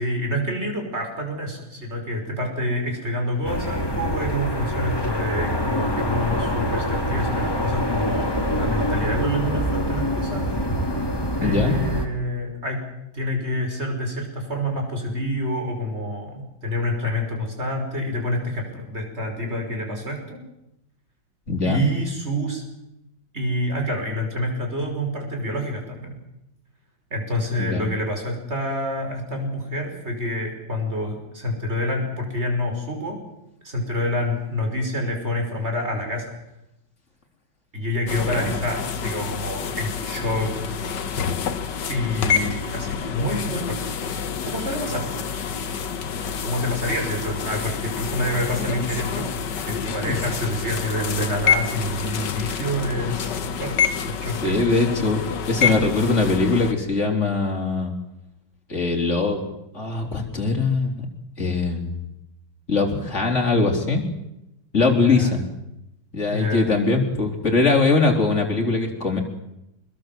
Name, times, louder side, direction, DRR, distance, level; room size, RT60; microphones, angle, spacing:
voice 1, 0.0-10.5 11.4-12.9 13.1-20.4 21.6-22.6 23.3-26.2 27.1-33.2 33.6-36.3 37.7-40.8 41.9-43.8 44.5-45.2 46.4-54.6 64.9-65.4 66.3-66.7, left 1 dB, 30° right, 3 dB, 6.0 m, -27 dB
sound 1, 3.4-12.1, equal, 10° left, 2.7 m, -25 dB
voice 2, 11.4-11.8 21.5-21.8 27.6-27.9 38.3-38.4 50.0-50.2 54.4-55.2 55.5-57.9 58.7-59.5 59.7-61.1 61.4-62.1 62.7-64.0 64.7-65.4 66.1-69.2, left 3 dB, 35° left, 2 dB, 4.1 m, -21 dB
sound 2, 38.1-56.7, left 7 dB, 60° left, 1.8 m, -27 dB
25.5 x 21.0 x 7.7 m, 0.86 s
omnidirectional pair, 2.2 m